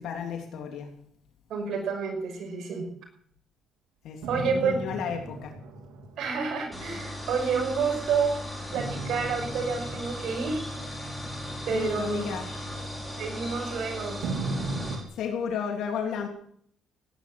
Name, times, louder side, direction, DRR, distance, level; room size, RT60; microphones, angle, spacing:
voice 1, 0.0-0.9 4.0-5.5 11.7-12.4 15.1-16.3, left 7 dB, 75° left, 2 dB, 3.3 m, -33 dB
voice 2, 1.5-2.9 4.3-4.8 6.2-8.3 8.7-10.6 11.6-12.3 13.2-14.2, right 5 dB, 65° right, 3 dB, 5.7 m, -29 dB
sound 1, 4.2-7.9 8.7-13.7 14.2-15.0, right 3 dB, 85° right, 3.4 m, -38 dB
sound 2, 6.7-15.0, left 1 dB, 5° left, 5.5 m, -37 dB
18.0 x 10.5 x 7.8 m, 0.64 s
cardioid pair, 110°, 0 cm